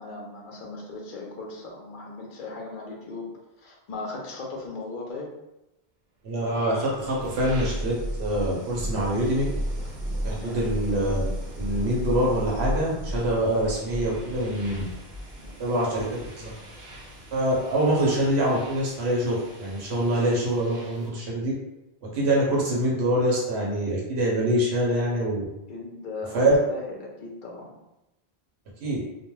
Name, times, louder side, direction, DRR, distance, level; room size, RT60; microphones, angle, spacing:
voice 1, 0.0-3.3 3.6-5.3 10.3-10.6 15.4-15.9 25.7-27.8, left 3 dB, 55° left, -1 dB, 0.7 m, -38 dB
voice 2, 6.2-7.9 8.2-9.4 10.2-11.3 11.5-14.8 15.6-16.5 17.3-21.5 22.1-25.4 26.3-26.5 28.8-29.0, right 1 dB, 90° right, -4 dB, 1.0 m, -25 dB
sound 1, 6.6-21.2, right 1 dB, 50° right, 0.7 m, -35 dB
2.3 x 2.2 x 3.0 m, 0.92 s
omnidirectional pair, 1.1 m